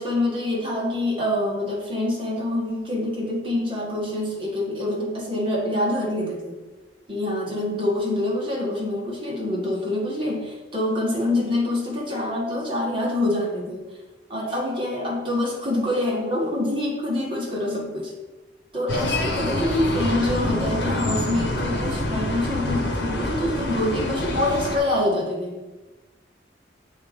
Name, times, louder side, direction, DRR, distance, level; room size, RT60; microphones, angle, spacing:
voice 1, 0.0-6.6 7.1-13.9 14.3-18.1 18.7-25.6, left 1 dB, 30° right, -3 dB, 1.7 m, -26 dB
sound 1, 18.9-24.8, left 1 dB, 80° left, 1.2 m, -26 dB
7.2 x 3.8 x 5.1 m, 1.2 s
head